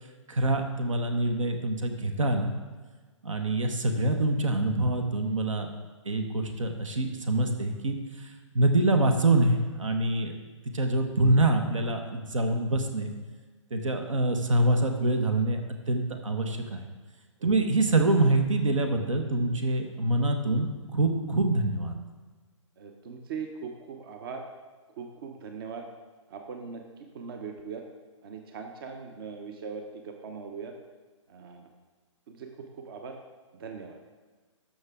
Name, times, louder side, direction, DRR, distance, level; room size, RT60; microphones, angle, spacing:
voice 1, 0.3-2.5 3.2-5.7 6.0-8.3 8.5-10.3 10.7-13.1 13.7-15.6 15.9-16.8 17.4-21.9, right 2 dB, 75° right, 6 dB, 1.2 m, -25 dB
voice 2, 22.8-24.4 25.0-25.8 26.3-27.8 28.2-30.7 31.3-31.7 32.3-33.1 33.5-34.0, right 5 dB, 45° right, 4 dB, 0.9 m, -40 dB
13.0 x 5.9 x 3.6 m, 1.4 s
figure-of-eight pair, 135°, 16 cm